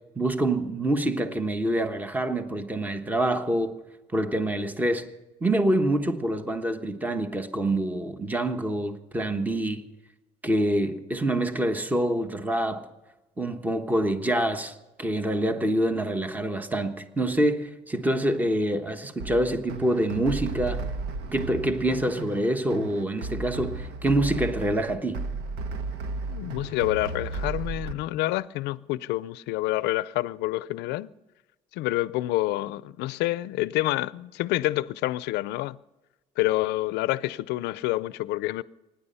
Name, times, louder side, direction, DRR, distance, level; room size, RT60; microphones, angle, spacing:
voice 1, 0.2-3.8 4.1-5.1 5.4-9.8 10.4-12.9 13.4-20.8 21.3-25.3, right 1 dB, 10° right, 1.2 m, -26 dB
sound 1, 19.2-27.9, right 3 dB, 85° right, 1.3 m, -34 dB
voice 2, 26.3-31.1 31.7-35.8 36.4-38.6, left 17 dB, 90° left, 0.5 m, -28 dB
24.5 x 10.5 x 5.6 m
cardioid pair, 110°, 17 cm